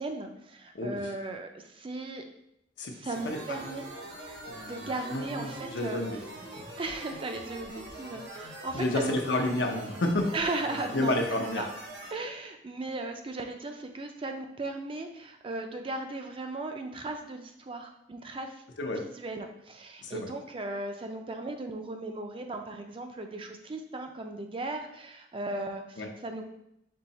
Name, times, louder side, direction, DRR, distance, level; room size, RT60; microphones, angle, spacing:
voice 1, 0.0-2.3 2.9-3.8 4.6-6.0 6.8-9.2 10.3-11.2 11.6-11.7 12.1-18.6 19.0-26.4, right 2 dB, 30° right, 5 dB, 0.4 m, -37 dB
sound 1, 3.1-12.1, right 1 dB, 70° right, 1.0 m, -43 dB
voice 2, 3.2-3.8 4.4-6.2 8.7-10.3 10.9-11.6 18.8-19.0 20.0-20.3 26.0-26.1, left 1 dB, 85° left, 2 dB, 0.8 m, -30 dB
4.6 x 2.8 x 4.1 m, 0.78 s
head